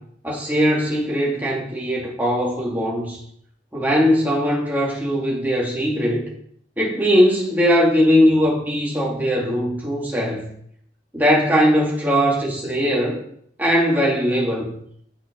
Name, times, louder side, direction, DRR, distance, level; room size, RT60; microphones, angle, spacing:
voice 1, 0.2-3.2 3.7-6.3 6.8-10.4 11.1-13.2 13.6-14.7, equal, 10° right, -4 dB, 2.5 m, -20 dB
8.9 x 8.2 x 5.4 m, 0.66 s
head